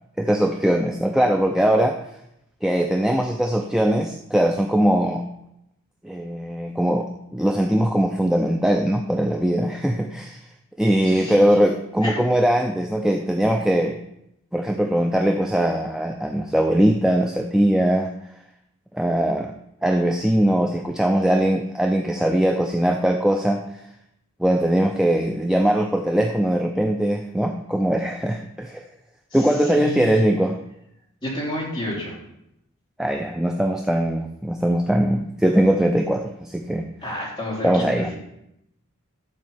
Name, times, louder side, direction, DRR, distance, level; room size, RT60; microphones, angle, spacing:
voice 1, 0.2-2.0 2.6-5.2 6.0-10.4 10.8-14.0 14.5-18.1 18.9-19.5 19.8-23.6 24.4-28.8 29.3-30.6 33.0-36.9 37.6-38.1, right 1 dB, 5° right, 3 dB, 0.4 m, -21 dB
voice 2, 11.0-11.6 12.0-12.2 29.3-30.3 31.2-32.2 37.0-38.1, left 1 dB, 20° left, -6 dB, 3.3 m, -31 dB
12.5 x 4.5 x 7.1 m, 0.80 s
head